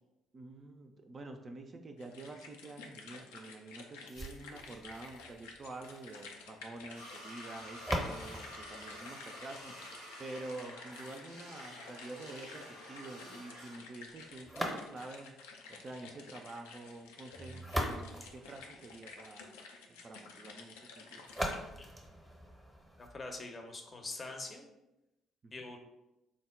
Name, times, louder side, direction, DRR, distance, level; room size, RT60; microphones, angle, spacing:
voice 1, 0.3-9.7 10.2-19.6 19.9-21.3 25.4-25.6, right 2 dB, 35° right, 4 dB, 0.3 m, -48 dB
sound 1, 2.0-21.6, left 4 dB, 70° left, 0.4 m, -52 dB
sound 2, 4.1-10.0 14.4-15.3 17.3-19.3 21.3-23.3, equal, 10° right, 0.7 m, -41 dB
sound 3, 6.9-13.8, equal, 85° left, 0.8 m, -50 dB
voice 2, 23.0-24.7 25.5-25.8, left 2 dB, 30° left, 3 dB, 0.6 m, -44 dB
3.7 x 2.1 x 3.5 m, 0.94 s
figure-of-eight pair, 45°, 0 cm